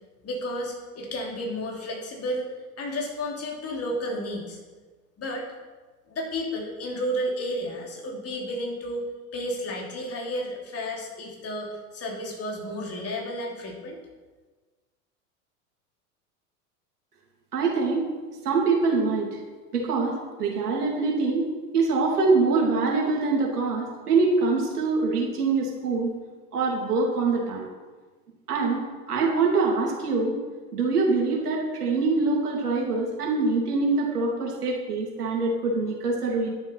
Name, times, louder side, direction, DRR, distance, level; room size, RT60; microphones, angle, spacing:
voice 1, 0.2-4.6 5.2-5.5 6.1-9.0 9.3-14.0, equal, 30° left, -1 dB, 3.2 m, -32 dB
voice 2, 17.5-18.1 18.4-19.4 19.7-21.5 21.7-26.1 26.5-27.6 28.5-28.8 29.1-30.4 30.7-36.5, right 3 dB, 80° right, -2 dB, 3.2 m, -24 dB
11.5 x 7.2 x 5.8 m, 1.3 s
hypercardioid pair, 85°, 45 cm